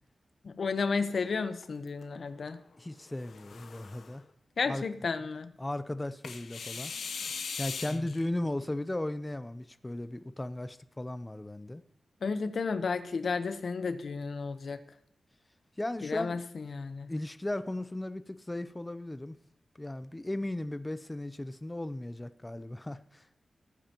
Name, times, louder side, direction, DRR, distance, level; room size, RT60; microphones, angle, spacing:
voice 1, 0.4-2.6 4.6-5.5 7.9-8.1 12.2-14.8 16.0-17.1, left 4 dB, 60° left, 10 dB, 0.9 m, -33 dB
sound 1, 1.1-2.0 3.1-4.2 6.2-8.2, left 5 dB, 85° left, 0.9 m, -40 dB
voice 2, 2.8-4.2 4.7-4.8 5.6-6.9 7.6-11.8 15.8-16.4 17.1-19.4 19.8-23.2, left 1 dB, 15° left, 12 dB, 0.6 m, -36 dB
18.0 x 8.8 x 3.0 m, 0.72 s
wide cardioid pair, 130°, 0 cm